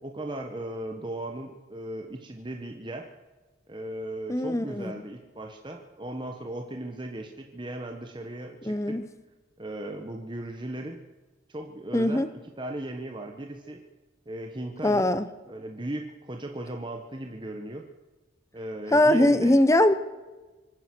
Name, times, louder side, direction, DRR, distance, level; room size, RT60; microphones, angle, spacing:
voice 1, 0.0-3.1 3.7-9.0 9.6-11.0 11.5-12.2 12.6-13.8 14.3-15.1 15.5-17.9 18.5-19.6, right 1 dB, 25° right, 3 dB, 1.1 m, -37 dB
voice 2, 4.3-4.9 8.6-9.0 11.9-12.3 14.8-15.3 18.9-19.9, left 1 dB, 15° left, 13 dB, 0.8 m, -21 dB
25.0 x 9.6 x 6.0 m, 1.2 s
head